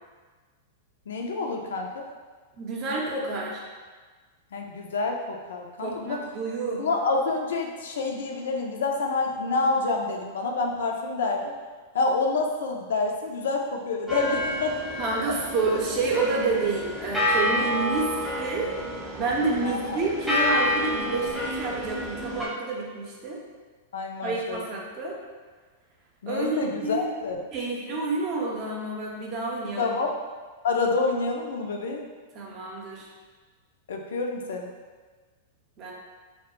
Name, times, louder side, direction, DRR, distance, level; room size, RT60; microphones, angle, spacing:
voice 1, 1.1-2.0 4.5-6.2 6.8-11.5 11.9-14.8 19.6-20.0 23.9-24.6 26.2-27.4 29.8-30.1 30.6-32.1 33.9-34.7, left 3 dB, 70° left, 2 dB, 0.3 m, -28 dB
voice 2, 2.6-3.6 5.8-6.8 15.0-18.1 18.4-18.7 19.1-23.4 24.2-25.2 26.3-27.1 27.5-30.0 32.3-33.1 35.8-35.9, right 3 dB, 40° right, -2 dB, 0.6 m, -29 dB
sound 1, 14.1-22.5, left 1 dB, 5° right, 0.6 m, -29 dB
2.1 x 2.1 x 3.0 m, 1.4 s
hypercardioid pair, 100°, 0 cm